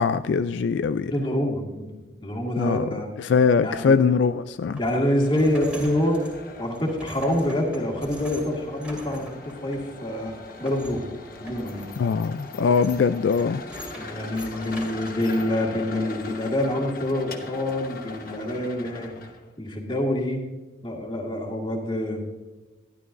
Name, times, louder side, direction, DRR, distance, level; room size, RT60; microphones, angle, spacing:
voice 1, 0.0-1.1 2.6-2.9 3.2-4.8 12.0-13.6, left 5 dB, 70° left, 0.3 m, -22 dB
voice 2, 1.0-1.9 2.2-3.3 3.6-4.0 4.8-6.2 6.6-10.3 10.6-11.0 11.4-11.9 13.9-19.1 19.6-20.4 20.8-22.2, left 1 dB, 25° left, 1.8 m, -26 dB
sound 1, 3.9-15.2, equal, 5° right, 2.5 m, -44 dB
sound 2, 5.2-19.5, left 3 dB, 50° left, 1.1 m, -41 dB
12.5 x 12.0 x 2.6 m
head